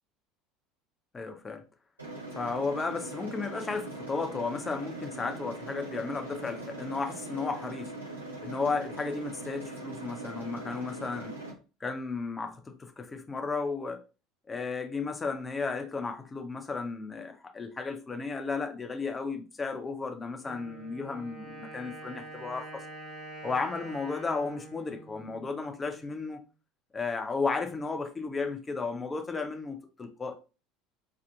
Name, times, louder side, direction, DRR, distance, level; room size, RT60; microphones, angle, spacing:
voice 1, 1.1-1.6 2.4-7.9 8.4-11.3 11.8-14.0 14.5-22.8 23.4-26.4 26.9-30.3, left 4 dB, 20° left, 0.5 m, -34 dB
sound 1, 2.0-11.5, right 2 dB, 90° right, 0.8 m, -41 dB
Wind instrument woodwind instrument, 20.4-26.1, right 2 dB, 35° right, 1.2 m, -46 dB
2.6 x 2.5 x 2.3 m
figure-of-eight pair, 65°, 0 cm